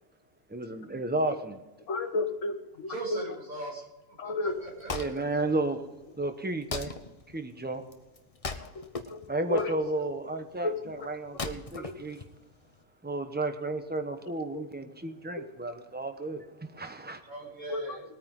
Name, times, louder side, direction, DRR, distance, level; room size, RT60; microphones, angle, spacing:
voice 1, 0.5-1.6 4.9-5.8 6.2-6.9 7.3-7.8 9.3-12.2 13.0-17.2, right 2 dB, 10° right, 6 dB, 0.8 m, -32 dB
voice 2, 1.9-3.3 4.2-4.7 8.6-8.8 9.1-9.2 9.5-10.3 10.6-11.1 11.8-11.9 14.5-14.6 15.4-15.5 17.7-18.0, left 2 dB, 55° left, 5 dB, 1.6 m, -33 dB
voice 3, 2.9-5.5 17.3-18.0, right 2 dB, 60° right, -3 dB, 5.9 m, -40 dB
Wood, 4.5-12.8, left 4 dB, 30° left, 0.7 m, -41 dB
21.0 x 9.2 x 3.8 m, 1.0 s
omnidirectional pair, 1.6 m